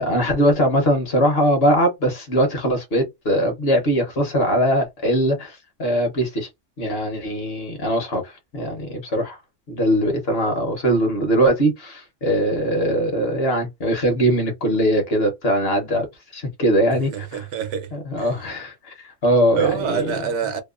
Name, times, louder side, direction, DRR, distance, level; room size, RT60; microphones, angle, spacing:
voice 1, 0.0-6.5 6.8-9.4 9.7-16.1 16.3-17.5 17.9-19.0 19.2-20.1, equal, 55° left, 1.0 m, -21 dB
voice 2, 17.1-17.9 18.2-18.3 19.5-20.6, right 7 dB, 75° right, 0.9 m, -26 dB
2.8 x 2.1 x 2.3 m
omnidirectional pair, 1.3 m